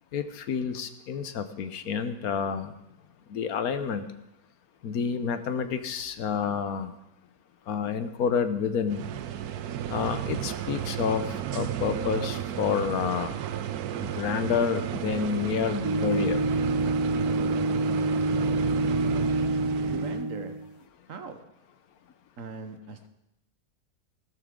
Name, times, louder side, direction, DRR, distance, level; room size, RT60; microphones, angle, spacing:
voice 1, 0.1-2.7 3.3-4.0 4.8-6.9 7.7-9.0 9.9-11.2 11.5-13.3 14.0-16.4, left 6 dB, 80° left, 10 dB, 1.3 m, -29 dB
sound 1, 8.9-20.2, right 11 dB, 90° right, 1.2 m, -33 dB
sound 2, 15.8-20.7, right 1 dB, 35° right, 0.5 m, -27 dB
voice 2, 19.7-20.7 21.1-21.5 22.4-23.1, right 4 dB, 60° right, 8 dB, 1.4 m, -40 dB
15.5 x 13.0 x 3.7 m, 0.87 s
omnidirectional pair, 1.5 m